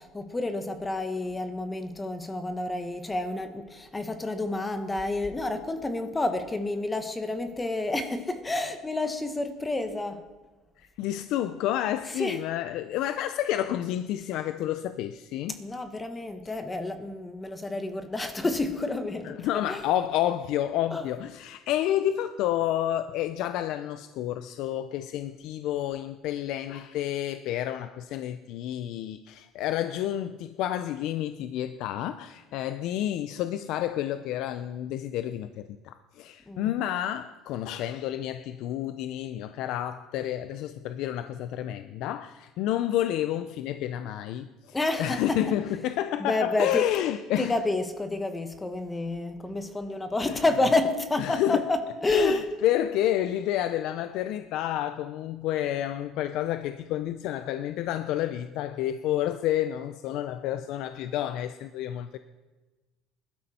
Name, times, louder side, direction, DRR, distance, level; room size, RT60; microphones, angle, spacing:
voice 1, 0.0-10.3 12.1-12.4 15.6-19.8 20.9-21.1 36.5-36.7 44.7-45.6 46.2-46.9 47.4-52.5, left 2 dB, 15° left, 1.3 m, -29 dB
voice 2, 10.8-15.6 19.2-47.5 51.2-51.6 52.1-62.2, left 12 dB, 70° left, 0.6 m, -30 dB
20.5 x 12.0 x 4.3 m
cardioid pair, 115°, 0 cm